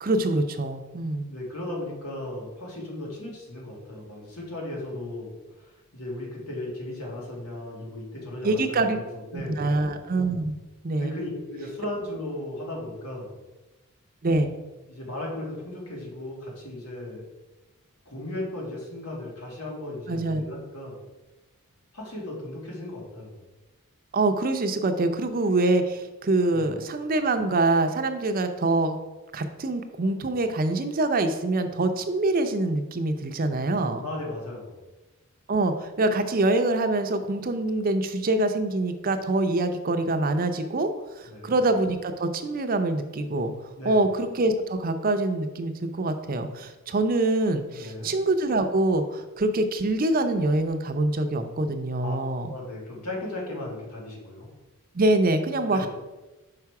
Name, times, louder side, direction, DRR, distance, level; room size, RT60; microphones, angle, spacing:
voice 1, 0.0-1.3 8.4-9.0 9.3-10.6 10.8-11.2 14.2-14.5 20.1-20.4 24.1-29.0 29.3-34.0 35.5-40.9 41.2-43.5 43.8-52.5 54.9-55.9, right 2 dB, 40° right, 8 dB, 0.5 m, -25 dB
voice 2, 1.3-9.7 10.9-13.3 14.9-17.2 18.1-21.0 21.9-23.4 26.5-26.8 34.0-34.7 41.3-41.6 43.8-44.0 47.8-48.1 52.0-52.2 52.5-54.5 55.7-55.9, left 1 dB, 85° left, -2 dB, 2.1 m, -36 dB
5.8 x 4.9 x 4.7 m, 1.1 s
head